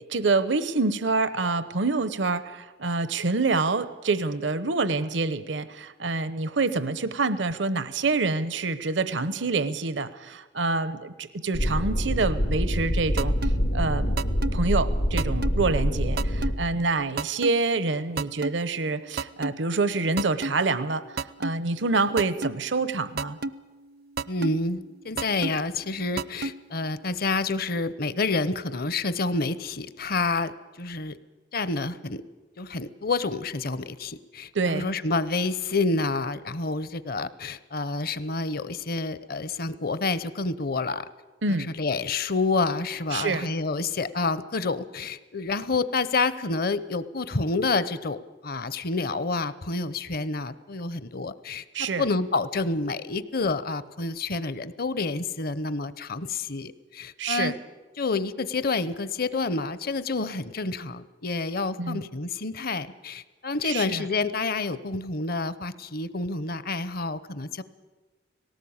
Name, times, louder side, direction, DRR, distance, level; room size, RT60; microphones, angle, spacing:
voice 1, 0.1-14.1 14.5-23.4 34.5-34.9 41.4-41.7 43.1-43.5 51.7-52.1 57.2-57.5 61.8-62.0 63.6-64.1, right 3 dB, 80° right, 14 dB, 0.9 m, -27 dB
sound 1, 11.5-16.5, equal, 75° left, 3.1 m, -25 dB
sound 2, 13.2-13.5 14.2-14.5 15.2-15.5 16.2-16.5 17.2-17.5 18.2-18.5 19.2-19.5 20.2-20.5 21.2-21.5 22.2-22.5 23.2-23.5 24.2-24.5 25.2-25.5 26.2-26.5, right 4 dB, 60° right, 0.5 m, -28 dB
voice 2, 24.3-31.2 31.5-32.2 32.6-41.1 41.5-57.5 58.0-67.6, left 3 dB, 55° left, 16 dB, 0.8 m, -28 dB
18.5 x 18.0 x 8.7 m, 1.3 s
head